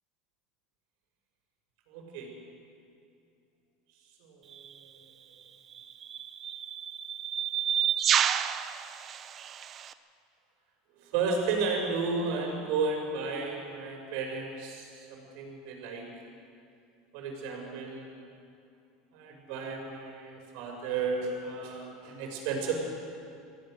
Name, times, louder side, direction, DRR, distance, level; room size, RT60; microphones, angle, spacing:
voice 1, 1.9-2.3 4.3-4.7 11.0-16.1 17.1-18.2 19.1-22.7, right 4 dB, 70° right, 1 dB, 5.9 m, -33 dB
sound 1, 4.5-4.7 5.7-9.9, right 9 dB, 35° right, 0.8 m, -30 dB
25.0 x 16.5 x 6.6 m, 2.6 s
supercardioid pair, 130°, 0 cm